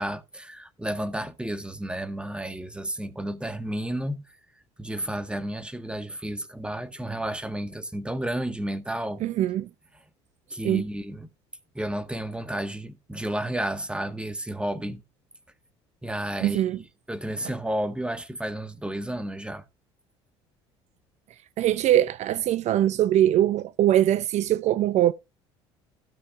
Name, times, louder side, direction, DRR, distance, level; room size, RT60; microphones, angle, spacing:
voice 1, 0.0-4.2 4.8-9.2 10.5-11.3 11.7-15.0 16.0-16.6 17.1-19.6, right 1 dB, 5° right, 1.8 m, -32 dB
voice 2, 9.2-9.7 10.6-10.8 16.4-16.8 21.6-25.1, right 12 dB, 55° right, 0.7 m, -22 dB
16.5 x 6.6 x 2.6 m
hypercardioid pair, 65°, 14 cm